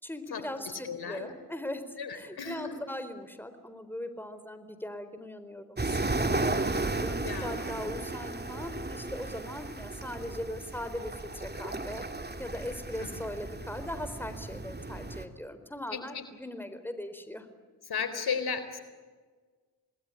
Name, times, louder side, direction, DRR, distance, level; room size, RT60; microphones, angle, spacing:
voice 1, 0.0-1.8 2.1-12.0 12.4-17.5, left 1 dB, 5° left, 10 dB, 4.2 m, -40 dB
voice 2, 0.8-1.3 2.0-2.7 7.2-7.8 13.0-13.1 15.9-16.2 17.9-18.8, left 6 dB, 70° left, 10 dB, 4.0 m, -35 dB
sound 1, 5.8-15.3, right 2 dB, 25° right, 2.7 m, -34 dB
28.5 x 20.0 x 9.9 m, 1.4 s
supercardioid pair, 45°, 39 cm